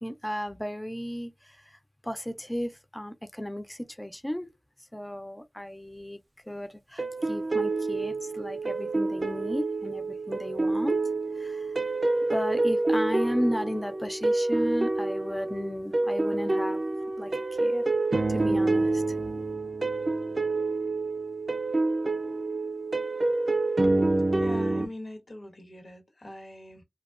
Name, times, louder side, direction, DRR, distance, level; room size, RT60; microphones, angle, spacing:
voice 1, 0.0-1.8 2.0-4.5 4.9-6.2 6.5-11.0 11.3-11.8 12.3-16.8 17.2-17.3 17.6-17.8 18.3-19.0, equal, 15° left, 0.3 m, -34 dB
sound 1, 7.0-24.9, right 2 dB, 55° right, 0.4 m, -27 dB
voice 2, 24.4-26.8, left 1 dB, 80° left, 1.0 m, -42 dB
2.6 x 2.1 x 2.3 m
wide cardioid pair, 45°, 0 cm